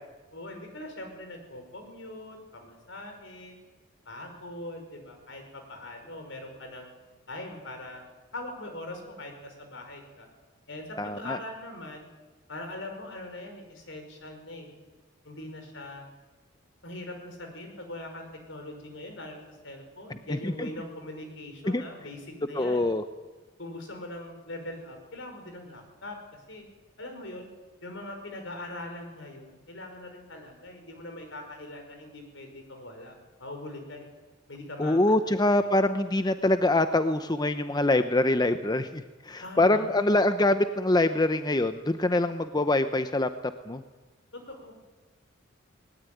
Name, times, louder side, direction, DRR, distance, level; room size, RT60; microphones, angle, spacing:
voice 1, 0.3-3.6 4.1-6.9 7.3-8.1 8.3-10.3 10.7-12.1 12.5-14.7 15.2-16.1 16.8-22.9 23.6-26.7 27.0-27.5 27.8-33.1 33.4-34.1 34.5-35.0 35.2-35.3 35.6-35.7 39.4-40.0 44.3-44.8, left 1 dB, 70° left, 5 dB, 5.7 m, -41 dB
voice 2, 11.0-11.4 20.3-20.7 21.7-21.8 22.5-23.0 34.8-43.3 43.7-43.8, left 2 dB, 20° left, 10 dB, 0.8 m, -24 dB
20.0 x 19.0 x 9.3 m, 1.3 s
head